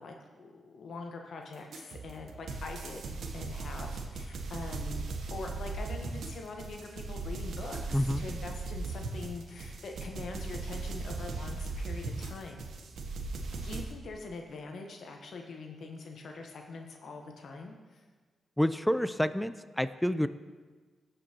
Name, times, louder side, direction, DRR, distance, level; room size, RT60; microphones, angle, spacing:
voice 1, 0.0-12.7 13.5-18.0, left 3 dB, 70° left, 2 dB, 1.0 m, -43 dB
sound 1, 1.7-13.9, right 3 dB, 70° right, 0.8 m, -38 dB
voice 2, 18.6-20.3, equal, 5° left, 13 dB, 0.4 m, -28 dB
15.5 x 5.3 x 2.9 m, 1.4 s
supercardioid pair, 55°, 0 cm